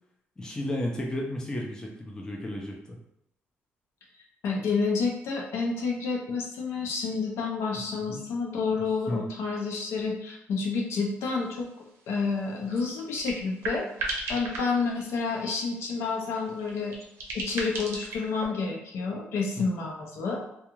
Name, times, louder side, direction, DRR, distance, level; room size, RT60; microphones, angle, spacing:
voice 1, 0.4-3.0 8.0-8.2 9.1-9.3 19.6-19.7, left 1 dB, 15° left, -1 dB, 0.4 m, -33 dB
voice 2, 4.4-11.7 12.1-13.9 14.3-16.9 17.3-20.4, left 4 dB, 75° left, -1 dB, 0.6 m, -29 dB
sound 1, 11.3-11.4 11.7-11.8 12.0-12.2 12.5-15.5 16.0-18.5, right 2 dB, 75° right, 0.6 m, -36 dB
2.4 x 2.3 x 3.0 m, 0.76 s
cardioid pair, 130°, 4 cm